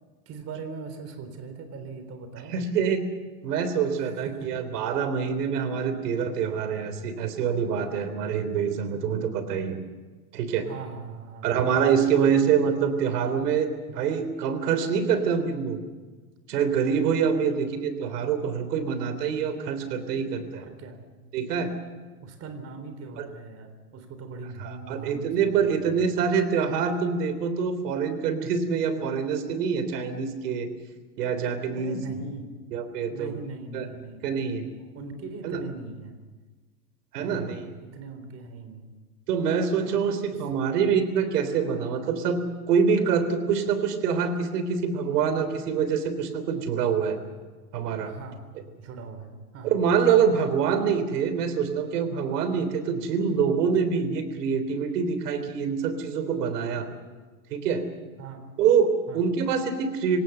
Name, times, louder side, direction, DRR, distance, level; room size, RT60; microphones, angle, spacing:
voice 1, 0.3-2.6 4.0-4.5 5.9-6.0 10.7-11.6 12.1-12.3 17.5-17.7 20.6-21.0 22.2-26.1 31.7-32.5 33.1-34.3 34.8-36.2 37.2-38.9 39.8-40.4 48.0-48.5 48.8-49.9 58.2-58.5 59.1-59.2, right 4 dB, 30° right, 8 dB, 3.7 m, -40 dB
voice 2, 2.5-3.0 3.4-9.8 10.3-10.7 11.4-15.8 16.5-20.6 21.3-21.7 23.2-23.3 24.6-30.7 31.2-32.0 32.7-33.3 33.7-33.9 34.2-34.6 35.4-35.6 37.1-37.7 39.3-47.2 47.7-48.1 49.6-56.9 57.5-57.8 58.6-60.2, right 6 dB, 80° right, 10 dB, 3.5 m, -25 dB
26.0 x 17.5 x 6.8 m, 1.3 s
supercardioid pair, 135°, 46 cm